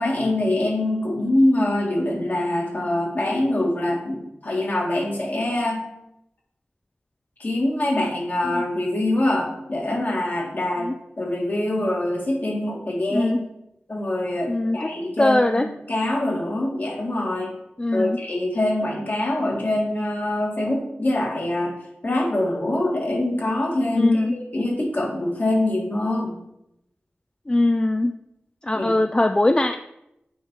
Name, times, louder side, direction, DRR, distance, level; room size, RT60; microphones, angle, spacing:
voice 1, 0.0-5.8 7.4-10.9 11.2-13.3 13.9-17.5 17.9-21.7 22.0-26.4 28.7-28.9, left 1 dB, 50° left, -2 dB, 2.2 m, -24 dB
voice 2, 14.5-14.9 15.2-15.7 17.8-18.2 24.0-24.3 27.5-28.1 28.6-29.8, left 1 dB, 20° left, 7 dB, 0.3 m, -21 dB
8.5 x 3.5 x 5.6 m, 0.83 s
wide cardioid pair, 80°, 4 cm